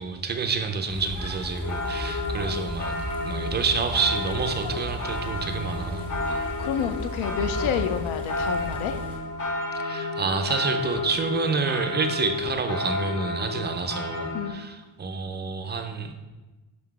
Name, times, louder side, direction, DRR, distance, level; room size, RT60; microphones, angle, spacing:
voice 1, 0.0-3.0 3.2-6.1 9.8-16.1, right 4 dB, 25° right, 5 dB, 0.3 m, -28 dB
sound 1, 0.9-9.2, equal, 5° left, 1.7 m, -35 dB
sound 2, 1.6-14.5, left 3 dB, 40° left, 1.0 m, -31 dB
voice 2, 6.2-9.0 14.3-14.6, left 8 dB, 70° left, 9 dB, 0.6 m, -30 dB
6.3 x 5.8 x 4.7 m, 1.2 s
wide cardioid pair, 180°, 50 cm